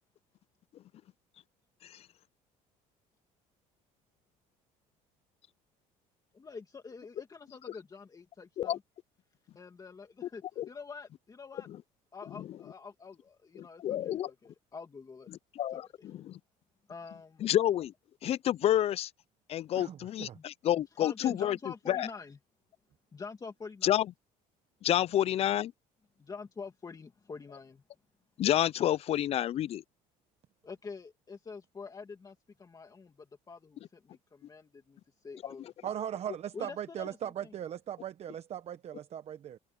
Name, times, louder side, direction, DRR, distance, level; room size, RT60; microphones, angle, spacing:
voice 1, 6.3-8.8 9.5-11.7 12.1-15.3 15.7-16.1 16.9-17.4 20.3-20.4 21.0-22.4 23.1-23.9 26.2-27.8 30.6-35.7 36.5-37.5, left 4 dB, 25° left, 2.4 m, -46 dB
voice 2, 13.6-14.3 15.3-16.4 17.4-17.9 18.2-19.1 19.5-21.6 21.9-22.1 23.8-24.1 24.8-25.7 28.4-29.8, left 12 dB, 40° left, 0.4 m, -29 dB
voice 3, 19.8-20.4 35.8-39.6, right 10 dB, 45° right, 1.0 m, -39 dB
cardioid pair, 115°, 15 cm